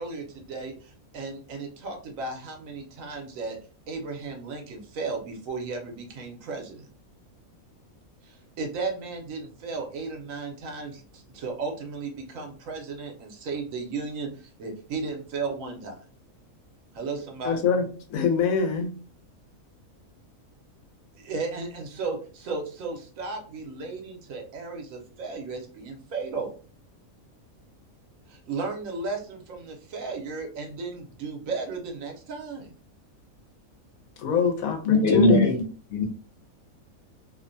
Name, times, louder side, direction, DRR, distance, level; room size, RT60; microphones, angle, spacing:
voice 1, 0.0-3.6 3.9-6.9 8.2-16.0 16.9-17.6 21.1-26.5 28.3-32.7, right 4 dB, 75° right, 3 dB, 1.1 m, -35 dB
voice 2, 17.4-17.8 18.1-18.9 34.2-35.6, left 5 dB, 80° left, 5 dB, 1.1 m, -24 dB
voice 3, 34.8-35.5 35.9-36.0, left 2 dB, 60° left, 0 dB, 0.7 m, -19 dB
2.8 x 2.1 x 2.5 m, 0.40 s
omnidirectional pair, 1.5 m